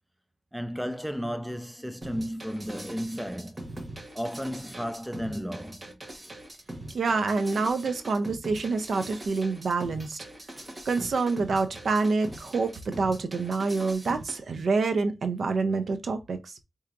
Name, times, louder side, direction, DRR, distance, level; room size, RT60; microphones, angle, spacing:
voice 1, 0.5-3.7 4.1-6.0, equal, 5° right, 0.3 m, -34 dB
sound 1, 2.0-14.4, right 1 dB, 30° right, 1.1 m, -42 dB
voice 2, 6.9-10.2 10.9-16.6, right 4 dB, 75° right, 0.6 m, -27 dB
4.5 x 2.7 x 2.5 m
wide cardioid pair, 75°, 0 cm